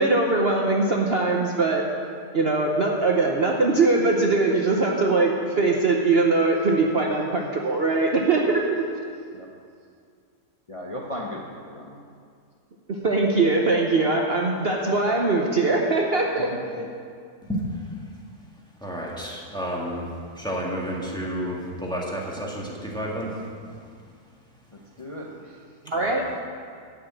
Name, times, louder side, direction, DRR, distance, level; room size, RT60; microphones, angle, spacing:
voice 1, 0.0-1.9 2.3-8.8 12.9-16.5 16.8-16.9 25.9-26.2, right 3 dB, 45° right, 0 dB, 1.0 m, -21 dB
voice 2, 10.7-12.0 16.4-16.6 25.0-25.6, left 1 dB, 25° left, -3 dB, 0.9 m, -36 dB
voice 3, 17.4-18.0 18.8-23.7 25.9-26.2, equal, 5° left, -3 dB, 1.7 m, -31 dB
12.0 x 5.8 x 8.7 m, 2.2 s
omnidirectional pair, 1.6 m